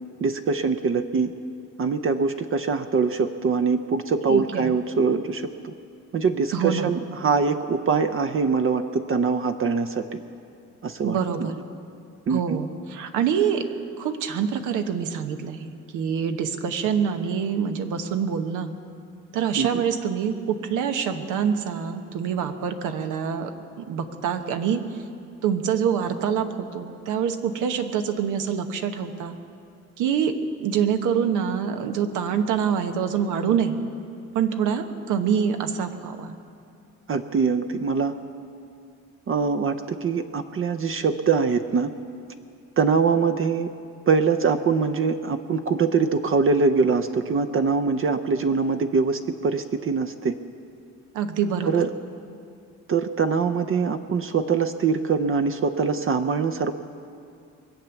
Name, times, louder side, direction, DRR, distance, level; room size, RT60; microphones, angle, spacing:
voice 1, 0.2-1.3 1.8-5.7 6.1-10.2 10.8-11.5 12.3-12.6 19.6-19.8 37.1-38.1 39.3-41.9 42.8-43.7 44.1-50.3 51.7-51.9 52.9-56.7, right 5 dB, 45° right, 7 dB, 0.7 m, -23 dB
voice 2, 4.3-4.7 6.5-6.9 11.0-11.5 12.3-13.7 14.0-18.7 19.3-24.8 25.4-29.4 30.0-33.8 34.3-36.4 51.1-51.8, right 7 dB, 90° right, 7 dB, 1.1 m, -25 dB
23.0 x 8.1 x 7.1 m, 2.5 s
cardioid pair, 90°, 30 cm